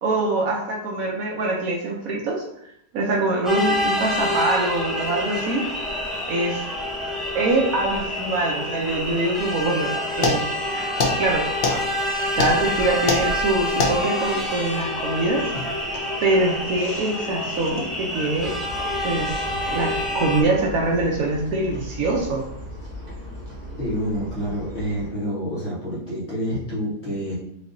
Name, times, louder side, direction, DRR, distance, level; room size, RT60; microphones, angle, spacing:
voice 1, 0.0-2.4 2.9-5.7 6.3-6.6 7.3-10.4 11.2-11.4 12.4-15.4 16.2-18.5 19.0-22.4, right 2 dB, 65° right, -1 dB, 1.0 m, -24 dB
sound 1, 3.4-20.4, left 1 dB, ahead, 0.3 m, -27 dB
sound 2, 10.2-17.9, left 3 dB, 65° left, 0.5 m, -28 dB
sound 3, 18.3-25.1, left 1 dB, 30° right, 1.1 m, -37 dB
voice 2, 23.8-27.4, equal, 45° left, -7 dB, 1.5 m, -28 dB
5.2 x 2.8 x 2.6 m, 0.76 s
omnidirectional pair, 1.8 m